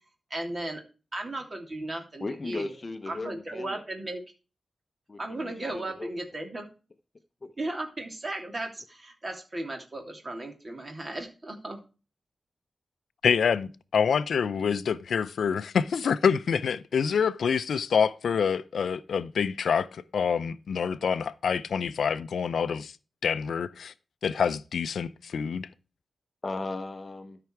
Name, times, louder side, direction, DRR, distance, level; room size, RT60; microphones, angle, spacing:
voice 1, 0.3-0.8 1.1-2.7 3.1-4.2 5.2-6.6 7.6-11.8, right 2 dB, 30° right, 3.0 m, -36 dB
voice 2, 2.2-3.8 5.1-6.1 7.4-7.5 26.4-27.4, left 3 dB, 30° left, 0.9 m, -36 dB
voice 3, 13.2-22.9 23.2-23.9 24.2-25.7, left 6 dB, 85° left, 0.5 m, -26 dB
13.0 x 5.8 x 4.6 m
wide cardioid pair, 140°, 0 cm